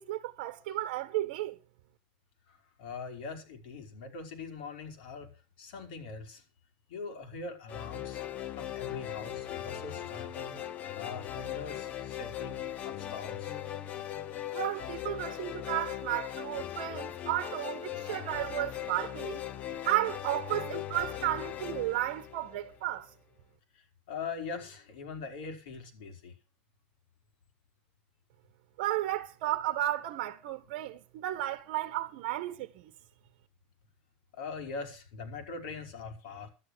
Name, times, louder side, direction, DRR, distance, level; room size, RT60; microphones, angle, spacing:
voice 1, 0.0-1.6 14.5-19.4 19.8-23.1 28.8-32.9, right 14 dB, 60° right, 1.3 m, -33 dB
voice 2, 2.5-5.3 5.6-6.4 6.9-8.2 8.6-10.6 10.9-13.5 23.7-26.3 34.3-36.5, left 4 dB, 70° left, 4.9 m, -42 dB
sound 1, 7.7-22.9, left 12 dB, 30° left, 1.0 m, -39 dB
12.5 x 10.0 x 6.3 m
supercardioid pair, 160°, 5 cm